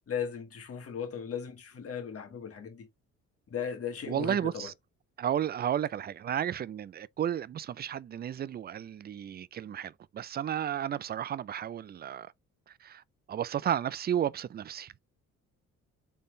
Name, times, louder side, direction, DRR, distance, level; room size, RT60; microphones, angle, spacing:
voice 1, 0.1-2.9 3.5-4.7, left 7 dB, 50° left, 1.8 m, -37 dB
voice 2, 4.1-4.7 5.2-12.3 12.8-13.0 13.3-14.9, right 10 dB, 35° right, 0.4 m, -33 dB
4.1 x 3.6 x 3.2 m
cardioid pair, 90°, 30 cm